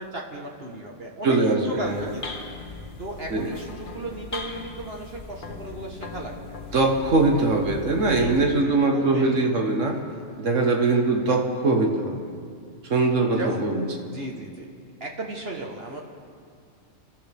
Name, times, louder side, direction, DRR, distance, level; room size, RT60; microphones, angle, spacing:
voice 1, 0.0-2.3 3.0-6.6 8.0-9.2 9.8-10.5 13.3-13.6 14.1-14.7 15.0-16.0, right 2 dB, 50° right, -1 dB, 1.6 m, -35 dB
voice 2, 1.2-2.0 3.3-3.5 6.7-10.0 10.4-12.3 12.9-13.9, right 3 dB, 75° right, 2 dB, 1.7 m, -22 dB
sound 1, 1.6-8.6, left 3 dB, 45° left, 1.2 m, -39 dB
29.0 x 13.0 x 3.5 m, 2.2 s
omnidirectional pair, 1.3 m